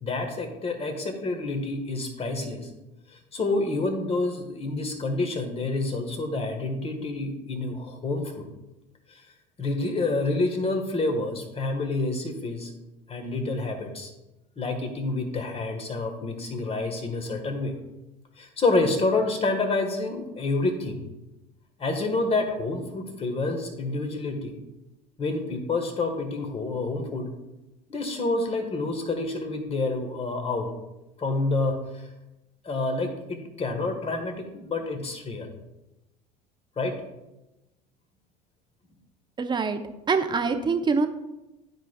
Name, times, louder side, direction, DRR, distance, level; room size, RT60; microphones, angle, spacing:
voice 1, 0.0-2.7 3.1-8.5 9.1-9.2 9.6-12.7 13.1-14.1 14.6-17.8 18.4-21.0 21.8-24.6 25.2-27.3 27.9-30.7 31.2-32.1 32.6-35.5 36.8-37.0, left 2 dB, 30° left, 5 dB, 1.6 m, -28 dB
voice 2, 39.4-39.8 40.1-41.1, right 4 dB, 20° right, 8 dB, 0.8 m, -24 dB
12.5 x 5.0 x 2.4 m, 0.99 s
hypercardioid pair, 70°, 21 cm